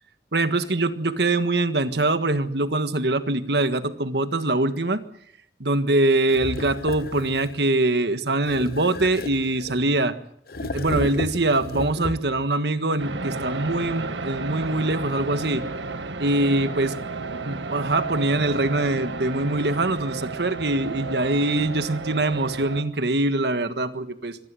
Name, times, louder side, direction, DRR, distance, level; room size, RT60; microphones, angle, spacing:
voice 1, 0.3-5.0 5.6-10.2 10.6-15.6 16.2-17.0 17.3-24.4, right 2 dB, 70° right, 10 dB, 1.6 m, -23 dB
sound 1, 6.3-7.6 8.4-10.0 10.5-12.5, left 2 dB, 55° left, 1.0 m, -33 dB
sound 2, 13.0-22.8, right 3 dB, 90° right, 1.6 m, -33 dB
24.5 x 18.5 x 7.7 m, 0.70 s
head